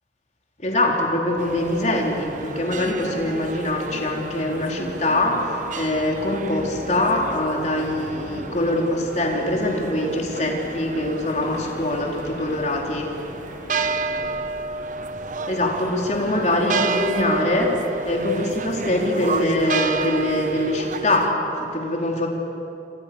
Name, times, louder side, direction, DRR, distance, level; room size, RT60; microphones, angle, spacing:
voice 1, 0.6-13.1 15.5-22.3, left 1 dB, 40° left, 0 dB, 4.0 m, -23 dB
sound 1, 0.8-15.6, equal, 90° left, 5.9 m, -39 dB
sound 2, 1.4-21.3, right 4 dB, 45° right, 1.0 m, -31 dB
29.0 x 26.0 x 7.1 m, 2.9 s
head